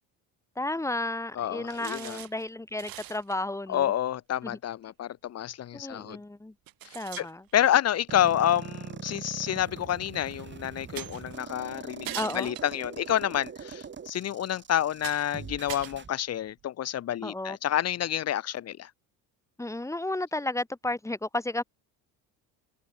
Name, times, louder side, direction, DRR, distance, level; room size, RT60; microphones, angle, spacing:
voice 1, 0.6-3.9 4.4-4.6 5.7-6.5 6.9-7.4 12.1-12.5 17.2-17.6 19.6-21.6, left 2 dB, 5° left, 2.2 m, -33 dB
voice 2, 1.4-2.2 3.7-6.2 7.2-7.3 7.5-18.9, left 11 dB, 40° left, 0.7 m, -29 dB
sound 1, 1.7-2.5 2.8-3.3 4.8-4.9 5.9-6.0 6.7-8.0 9.2-9.3 11.0-11.4 12.0-13.2 13.9-14.0 14.5-14.6 15.0-15.4 15.7-16.6, right 14 dB, 60° right, 2.5 m, -42 dB
sound 2, 8.1-16.1, right 6 dB, 30° right, 1.9 m, -42 dB
cardioid pair, 105°, 39 cm